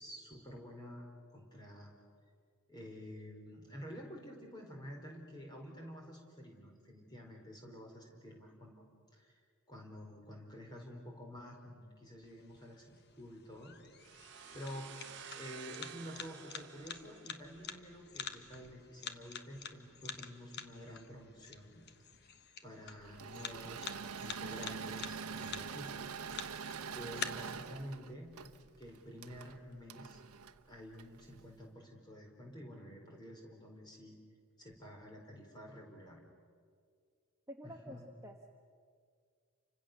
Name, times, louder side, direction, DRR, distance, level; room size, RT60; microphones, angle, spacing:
voice 1, 0.0-1.9 2.7-8.8 9.1-9.4 9.7-15.0 15.4-21.8 22.6-26.0 26.9-28.3 28.8-30.2 30.7-34.2 34.6-36.2 37.6-38.0, equal, 20° left, 0 dB, 4.7 m, -50 dB
sound 1, 12.2-27.2, left 7 dB, 50° left, 1.2 m, -48 dB
sound 2, 14.0-17.7, right 7 dB, 55° right, 1.2 m, -52 dB
Engine / Mechanisms, 23.0-31.4, right 6 dB, 85° right, 1.0 m, -45 dB
voice 2, 37.5-38.5, equal, 15° right, 1 dB, 1.2 m, -49 dB
30.0 x 25.5 x 6.9 m, 2.1 s
head